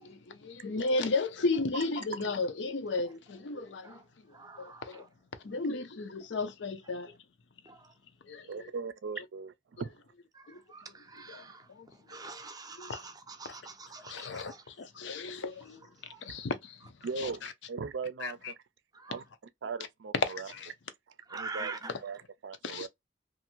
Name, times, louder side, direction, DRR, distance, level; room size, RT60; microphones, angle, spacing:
voice 1, 0.0-5.1 5.4-7.1 8.2-8.7 9.2-9.3 10.5-10.6 11.3-12.4 12.8-13.0 13.5-13.6 14.0-15.8 16.2-16.8 17.2-17.5 18.2-18.5 20.3-20.7 22.6-22.9, left 3 dB, 75° left, 0.6 m, -35 dB
voice 2, 3.5-4.0 4.3-5.0 7.7-7.9 10.3-11.7 12.1-14.6 15.0-15.1 16.1-16.2 18.9-19.2 21.3-21.9, right 3 dB, 20° right, 0.5 m, -45 dB
voice 3, 8.4-9.9 17.0-18.5 19.1-19.2 19.6-20.5 21.3-21.7 22.0-22.9, right 5 dB, 80° right, 0.4 m, -39 dB
2.6 x 2.5 x 2.8 m
head